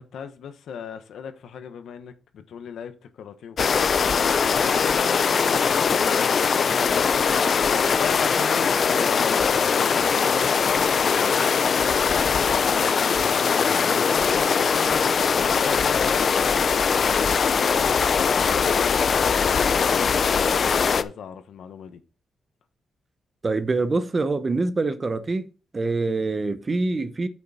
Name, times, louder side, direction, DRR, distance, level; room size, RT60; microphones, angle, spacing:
voice 1, 0.0-22.0, left 7 dB, 80° left, 1.2 m, -38 dB
sound 1, 3.6-21.0, left 6 dB, 45° left, 0.5 m, -21 dB
voice 2, 23.4-27.3, right 3 dB, 25° right, 0.8 m, -25 dB
8.5 x 6.7 x 4.2 m
wide cardioid pair, 140°, 0 cm